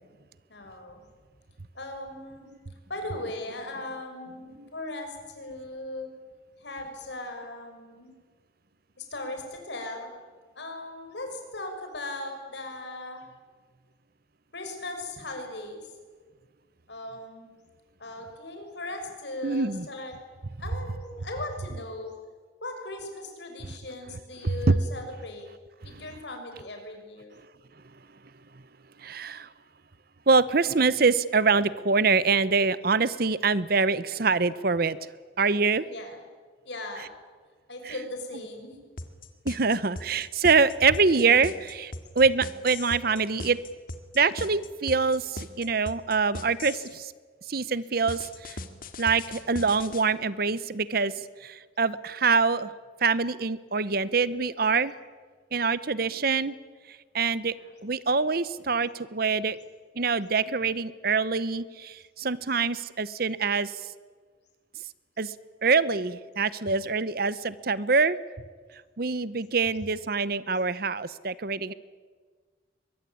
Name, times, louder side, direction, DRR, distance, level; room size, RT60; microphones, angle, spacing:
voice 1, 0.5-1.0 1.7-2.5 2.9-6.1 6.6-8.1 9.0-10.1 10.6-13.3 14.5-15.8 16.9-17.5 18.0-20.1 20.6-22.1 22.6-25.5 25.8-27.4 35.9-36.2 36.6-37.1 37.7-38.8 57.5-57.7, left 2 dB, 70° left, 4 dB, 5.9 m, -38 dB
voice 2, 19.4-19.9 24.4-24.8 29.0-29.5 30.3-35.0 35.4-35.8 37.8-37.9 39.4-43.6 44.1-47.1 47.5-48.6 49.0-52.7 53.0-54.9 55.5-56.5 57.1-57.5 57.8-59.6 60.0-63.7 65.2-65.3 65.6-68.2 69.0-71.7, right 4 dB, 55° right, 17 dB, 0.9 m, -25 dB
sound 1, 39.0-47.0 48.1-50.0, left 2 dB, 50° left, 2.0 m, -39 dB
23.0 x 21.0 x 9.9 m, 1.5 s
head